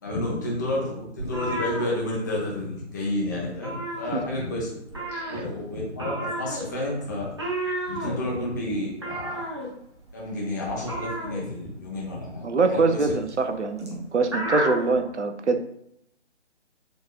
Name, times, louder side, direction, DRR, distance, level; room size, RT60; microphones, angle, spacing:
voice 1, 0.0-4.7 5.3-7.3 7.9-9.4 10.1-13.1, left 1 dB, 15° left, -5 dB, 0.7 m, -30 dB
sound 1, 1.2-2.7 2.9-3.2 3.5-4.6 4.9-15.0, right 1 dB, 25° right, 0.6 m, -33 dB
voice 2, 5.1-5.4 12.4-15.6, right 3 dB, 75° right, 7 dB, 0.7 m, -24 dB
6.4 x 2.9 x 2.4 m, 0.75 s
figure-of-eight pair, 145°, 35 cm